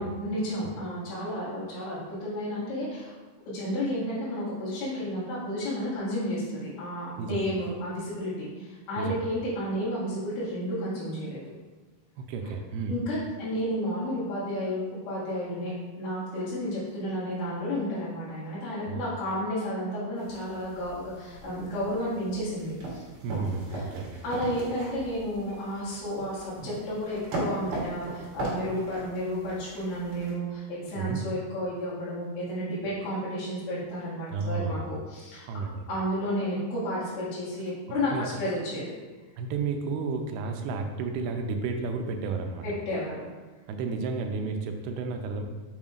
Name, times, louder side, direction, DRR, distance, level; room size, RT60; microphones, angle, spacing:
voice 1, 0.0-3.1 3.5-11.4 12.9-23.0 24.2-35.5 35.9-39.0 42.6-43.2, equal, 75° left, -10 dB, 3.8 m, -32 dB
voice 2, 7.2-7.5 9.0-9.3 12.2-13.0 18.9-19.0 23.2-24.2 31.0-31.2 34.3-34.9 35.5-35.8 38.1-38.3 39.4-42.7 43.7-45.4, right 4 dB, 85° right, 4 dB, 2.6 m, -32 dB
sound 1, 20.2-30.3, right 1 dB, 60° right, 3.2 m, -39 dB
7.1 x 5.7 x 2.4 m, 1.3 s
omnidirectional pair, 4.5 m